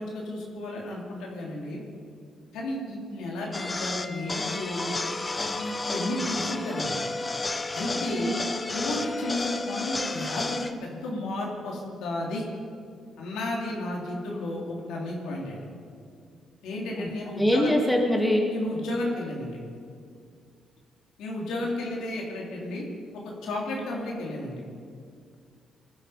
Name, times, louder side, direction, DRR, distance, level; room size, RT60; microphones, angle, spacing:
voice 1, 0.0-1.8 2.5-5.0 5.3-7.0 7.7-8.3 8.7-12.4 13.2-15.6 16.6-17.7 18.5-19.6 21.2-22.9 23.4-24.6, left 1 dB, 85° left, -2 dB, 3.5 m, -33 dB
sound 1, 3.5-10.7, left 2 dB, 25° left, 0.9 m, -32 dB
voice 2, 17.4-18.5, left 1 dB, 5° left, 0 dB, 2.6 m, -23 dB
21.0 x 12.0 x 5.1 m, 2.3 s
cardioid pair, 90°, 0 cm